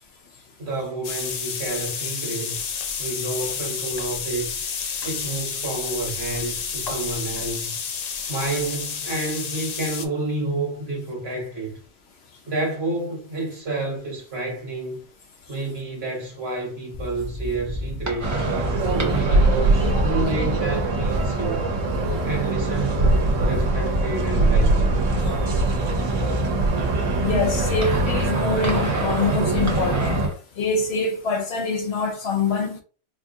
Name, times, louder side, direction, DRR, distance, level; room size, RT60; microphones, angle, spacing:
voice 1, 0.6-2.6 3.0-4.5 5.0-7.8 8.3-11.8 12.5-15.0 15.5-18.4 18.9-21.7 22.3-25.0, right 2 dB, 55° right, 1.6 m, -29 dB
sound 1, 1.0-10.0, left 6 dB, 80° left, 0.3 m, -30 dB
sound 2, 16.9-30.3, equal, 20° right, 0.6 m, -32 dB
sound 3, 18.2-30.3, right 2 dB, 85° right, 1.3 m, -22 dB
voice 2, 27.2-30.2 30.6-32.8, left 4 dB, 65° left, 0.8 m, -25 dB
4.2 x 2.5 x 2.7 m
omnidirectional pair, 1.3 m